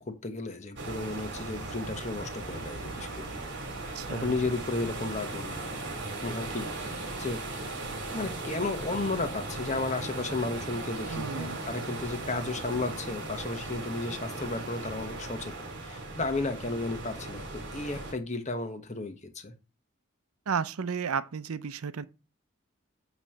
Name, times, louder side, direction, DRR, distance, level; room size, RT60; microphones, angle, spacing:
voice 1, 0.0-3.4 3.8-5.8 6.2-7.4 8.1-19.5, left 3 dB, 30° left, 1.1 m, -34 dB
sound 1, 0.8-18.1, right 2 dB, 55° right, 2.1 m, -37 dB
voice 2, 3.9-4.4 11.1-11.6 20.5-22.0, right 6 dB, 90° right, 0.6 m, -33 dB
9.0 x 3.1 x 6.4 m
head